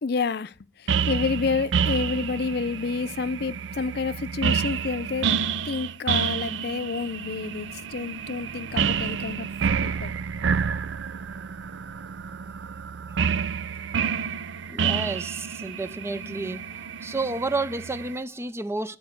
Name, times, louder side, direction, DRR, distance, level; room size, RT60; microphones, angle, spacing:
voice 1, 0.0-5.4 5.6-9.5 9.8-10.1, left 4 dB, 60° left, 0.5 m, -29 dB
sound 1, 0.9-18.2, right 6 dB, 80° right, 0.5 m, -29 dB
voice 2, 14.7-16.6 17.0-19.0, right 2 dB, 15° right, 0.4 m, -30 dB
12.5 x 4.6 x 6.4 m
head